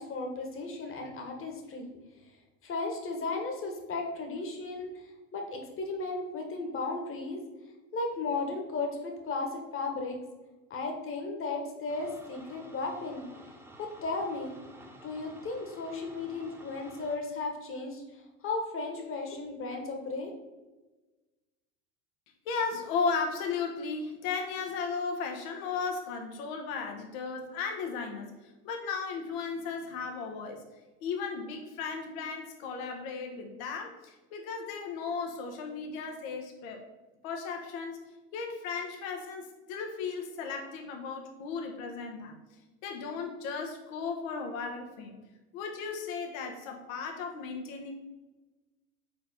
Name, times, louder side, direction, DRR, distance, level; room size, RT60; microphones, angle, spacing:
voice 1, 0.0-1.9 2.6-7.4 7.9-10.2 10.7-13.3 13.8-14.6 15.0-20.3, left 3 dB, 30° left, 3 dB, 1.6 m, -35 dB
sound 1, 11.9-17.2, right 1 dB, 5° right, 1.3 m, -52 dB
voice 2, 22.4-30.6 31.0-36.8 37.2-38.0 38.3-42.4 42.8-45.2 45.5-47.9, left 5 dB, 60° left, 3 dB, 1.3 m, -35 dB
5.0 x 4.3 x 5.6 m, 1.1 s
hypercardioid pair, 90°, 46 cm